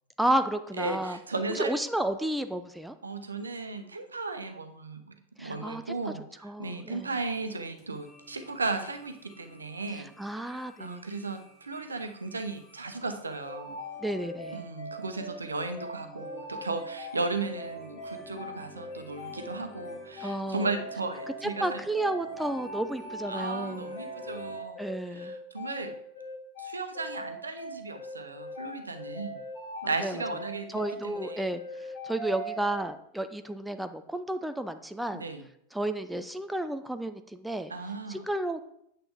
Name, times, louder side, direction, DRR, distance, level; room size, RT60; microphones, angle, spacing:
voice 1, 0.2-1.2 1.5-2.9 5.4-5.8 6.4-7.1 9.9-11.0 14.0-14.6 20.2-20.7 21.4-24.0 24.8-25.3 30.0-30.2 30.7-31.6 32.0-35.2 35.7-37.7 38.1-38.6, right 1 dB, 5° right, 9 dB, 0.6 m, -32 dB
voice 2, 0.8-1.7 3.0-5.0 5.4-10.1 10.4-13.8 14.5-21.8 23.3-25.9 26.6-29.4 29.8-31.4 35.1-35.4 37.7-38.3, right 3 dB, 75° right, 7 dB, 1.0 m, -35 dB
sound 1, 7.0-24.6, left 1 dB, 25° left, 1.6 m, -52 dB
sound 2, 13.4-32.8, left 1 dB, 55° left, 3.9 m, -40 dB
8.9 x 7.7 x 3.6 m, 0.72 s
figure-of-eight pair, 90°, 0 cm